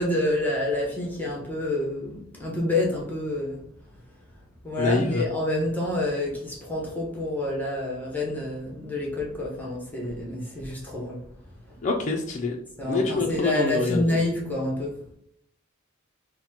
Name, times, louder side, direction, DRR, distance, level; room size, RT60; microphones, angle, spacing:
voice 1, 0.0-3.6 4.6-11.2 11.7-11.8 12.8-15.0, left 1 dB, 10° left, 0.9 m, -28 dB
voice 2, 4.8-5.2 11.8-12.6 12.8-14.2, left 3 dB, 35° left, 0.4 m, -25 dB
4.1 x 2.1 x 4.2 m
head